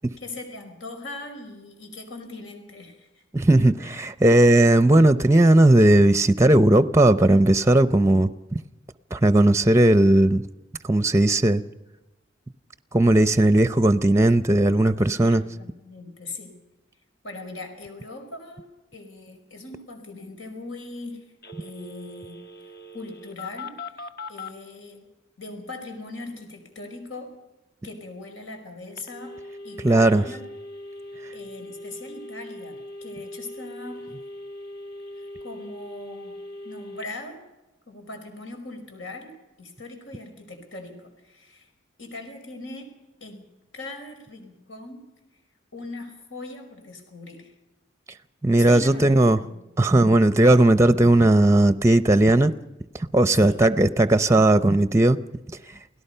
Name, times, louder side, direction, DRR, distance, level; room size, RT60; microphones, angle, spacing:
voice 1, 0.2-3.2 15.1-16.5 17.2-18.7 18.9-21.3 21.6-22.4 22.9-25.1 25.4-27.3 27.8-29.4 29.6-30.5 31.3-34.1 35.1-36.4 36.6-37.4 37.9-39.3 39.6-41.7 42.0-42.9 43.2-43.5 43.7-45.0 45.7-47.5 48.5-49.7 53.3-53.6, left 2 dB, 80° left, 4 dB, 5.2 m, -40 dB
voice 2, 3.3-8.6 9.1-10.4 10.8-11.6 12.9-15.4 29.8-30.2 48.4-49.4 49.8-52.5 53.1-55.2, right 1 dB, 15° right, 13 dB, 0.6 m, -17 dB
Telephone, 21.4-24.5 29.0-37.1, left 2 dB, 50° left, 1.5 m, -40 dB
29.0 x 17.5 x 5.6 m, 1.0 s
head